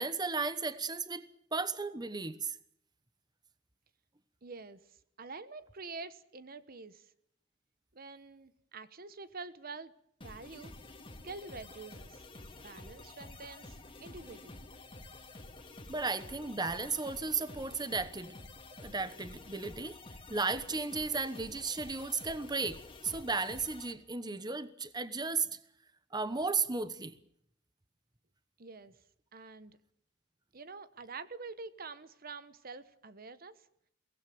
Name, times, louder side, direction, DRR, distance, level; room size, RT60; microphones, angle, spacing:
voice 1, 0.0-2.6 15.9-18.3 18.8-20.0 20.3-25.5 26.1-27.1, right 4 dB, 20° right, 13 dB, 1.1 m, -35 dB
voice 2, 4.4-7.1 7.9-9.9 10.2-10.7 11.2-12.3 12.5-14.6 28.6-28.9 29.3-29.8 30.5-33.7, right 4 dB, 50° right, 14 dB, 1.2 m, -47 dB
sound 1, 10.2-23.9, left 2 dB, 30° left, 2.4 m, -50 dB
23.5 x 18.0 x 9.3 m, 0.72 s
head